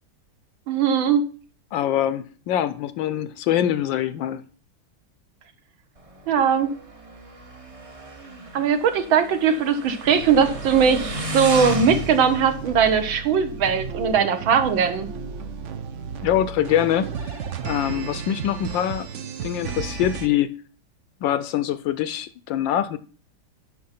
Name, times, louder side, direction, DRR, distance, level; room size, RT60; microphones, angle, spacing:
voice 1, 0.7-1.2 6.3-6.7 8.5-15.1, right 6 dB, 70° right, 1.8 m, -20 dB
voice 2, 1.7-4.4 16.2-19.1 19.4-20.6 21.2-23.0, left 11 dB, 75° left, 1.2 m, -24 dB
Motorcycle, 6.0-14.2, right 1 dB, 30° right, 0.7 m, -35 dB
sound 1, 10.0-20.3, right 6 dB, 85° right, 0.6 m, -34 dB
9.4 x 6.0 x 5.7 m
omnidirectional pair, 2.3 m